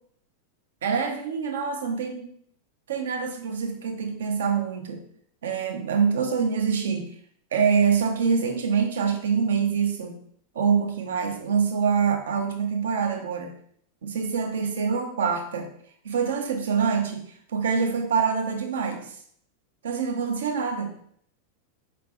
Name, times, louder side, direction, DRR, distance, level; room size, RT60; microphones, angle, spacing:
voice 1, 0.8-2.3 2.9-5.0 5.4-7.0 7.5-10.1 10.5-13.5 14.0-15.7 16.0-17.2 17.5-19.1 19.8-20.9, right 6 dB, 65° right, 4 dB, 0.7 m, -25 dB
4.8 x 3.5 x 2.5 m, 0.64 s
figure-of-eight pair, 90°, 0 cm